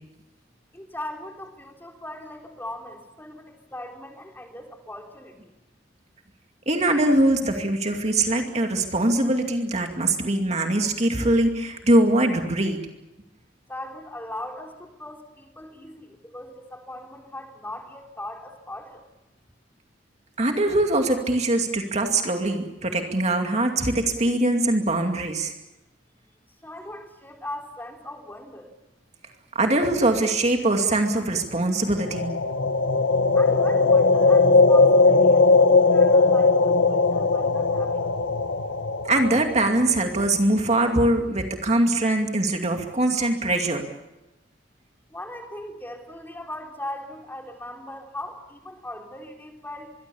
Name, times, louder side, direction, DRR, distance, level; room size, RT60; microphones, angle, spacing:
voice 1, 0.7-5.4 13.7-19.0 26.6-28.7 33.3-38.1 45.1-49.9, left 1 dB, 10° left, 2 dB, 3.5 m, -39 dB
voice 2, 6.7-12.8 20.4-25.5 29.5-32.3 39.0-43.8, right 1 dB, 35° right, 3 dB, 2.5 m, -22 dB
sound 1, 32.0-40.0, left 3 dB, 90° left, 1.7 m, -19 dB
25.0 x 23.0 x 7.1 m, 0.98 s
head